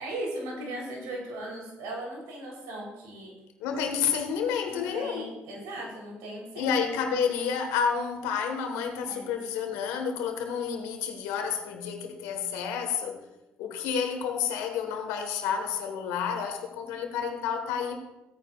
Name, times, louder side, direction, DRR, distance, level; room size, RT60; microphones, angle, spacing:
voice 1, 0.0-3.3 4.7-6.8 9.1-9.3, right 1 dB, 85° right, 3.8 m, -37 dB
voice 2, 3.6-5.3 6.5-13.2 13.6-18.0, left 7 dB, 85° left, 1.5 m, -30 dB
16.5 x 9.4 x 2.5 m
supercardioid pair, 60°, 6 cm